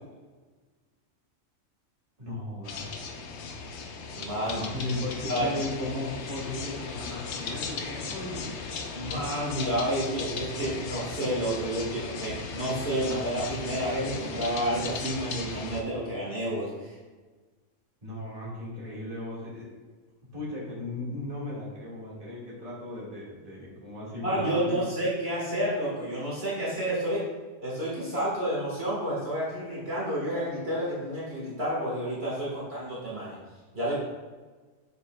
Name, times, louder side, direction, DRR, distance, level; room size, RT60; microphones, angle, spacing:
voice 1, 2.2-2.9 4.4-8.5 18.0-19.7 20.3-24.9, left 2 dB, 25° right, -7 dB, 2.0 m, -36 dB
sound 1, 2.6-15.8, left 4 dB, 60° left, 0.9 m, -37 dB
voice 2, 4.1-4.7 5.3-5.5 8.9-17.0 24.2-27.3 27.6-33.4 33.7-34.0, right 1 dB, 50° right, -7 dB, 1.9 m, -30 dB
7.5 x 6.6 x 2.3 m, 1.3 s
omnidirectional pair, 1.4 m